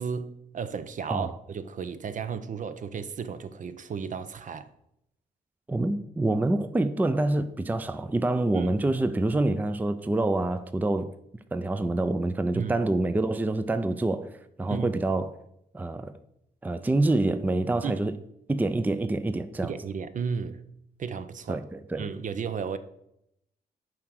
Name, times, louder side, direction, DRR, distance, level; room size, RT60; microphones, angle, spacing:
voice 1, 0.0-4.7 8.5-8.7 12.5-12.8 14.7-14.9 17.8-17.9 19.6-20.6 21.0-21.6 22.0-22.8, right 6 dB, 50° right, 0.6 m, -34 dB
voice 2, 5.7-11.1 11.5-15.3 15.7-16.2 16.6-18.2 18.5-19.7 21.5-22.1, right 2 dB, 10° right, 0.4 m, -26 dB
7.3 x 4.7 x 6.4 m
cardioid pair, 100°, 17 cm